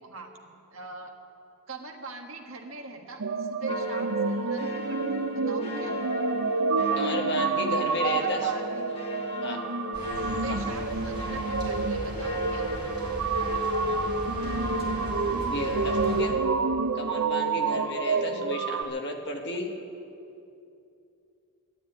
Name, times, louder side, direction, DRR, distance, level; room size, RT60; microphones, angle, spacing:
voice 1, 0.0-1.1 1.7-5.0 5.4-6.0 8.0-8.8 10.3-12.7 18.0-18.5, right 3 dB, 65° right, 2 dB, 1.6 m, -42 dB
sound 1, 3.2-18.8, right 4 dB, 80° right, 0.7 m, -28 dB
sound 2, 3.7-16.4, left 2 dB, 25° left, 1.4 m, -38 dB
voice 2, 6.9-8.4 9.4-9.6 10.5-10.6 15.5-16.4 16.9-19.7, left 1 dB, 50° left, 2 dB, 1.5 m, -33 dB
sound 3, 9.9-16.3, equal, 20° right, 4.4 m, -38 dB
12.0 x 11.0 x 9.2 m, 2.6 s
head